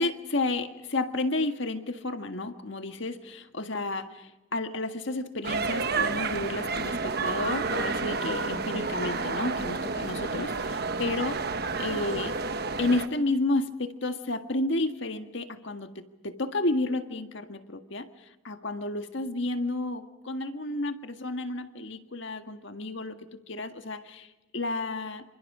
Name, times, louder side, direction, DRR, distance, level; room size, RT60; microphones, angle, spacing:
voice 1, 0.0-11.4 11.8-12.4 12.8-18.1 18.4-24.3 24.5-25.2, left 2 dB, 60° left, 7 dB, 1.7 m, -31 dB
sound 1, 5.4-13.1, right 4 dB, 50° right, 1.3 m, -30 dB
27.5 x 26.5 x 5.0 m, 1.1 s
head